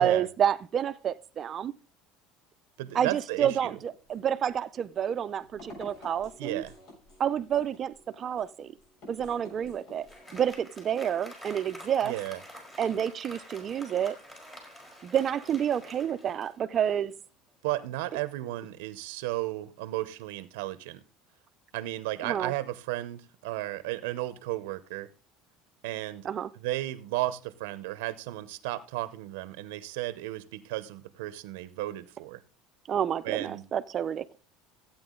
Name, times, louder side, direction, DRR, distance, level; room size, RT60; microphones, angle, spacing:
voice 1, 0.0-1.7 2.9-6.6 7.2-8.7 9.1-10.1 10.3-12.1 12.8-14.2 15.0-17.1 22.2-22.5 26.2-26.5 32.9-34.4, right 9 dB, 35° right, 0.6 m, -29 dB
voice 2, 2.8-3.8 6.4-6.7 12.0-12.4 17.6-21.0 21.7-25.1 25.8-26.3 26.6-32.4 33.2-33.6, right 16 dB, 90° right, 0.7 m, -34 dB
sound 1, 3.9-10.6, left 1 dB, 60° left, 6.7 m, -52 dB
Applause, 9.5-17.0, equal, 15° left, 4.2 m, -48 dB
14.5 x 8.7 x 3.8 m
cardioid pair, 145°, 0 cm